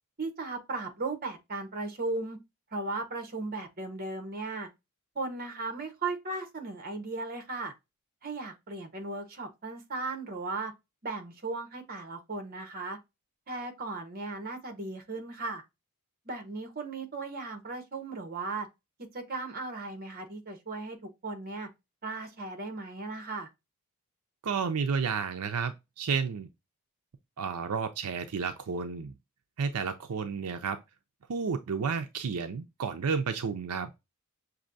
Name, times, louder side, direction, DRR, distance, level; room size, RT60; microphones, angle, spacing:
voice 1, 0.2-2.4 2.7-4.7 5.1-7.7 8.2-10.7 11.0-13.0 13.5-15.6 16.2-18.7 19.1-21.7 22.0-23.5, right 3 dB, 45° right, 1.0 m, -36 dB
voice 2, 24.4-26.5 27.4-29.1 29.6-30.8 31.3-33.9, right 5 dB, 85° right, 0.5 m, -31 dB
6.2 x 2.7 x 2.6 m
head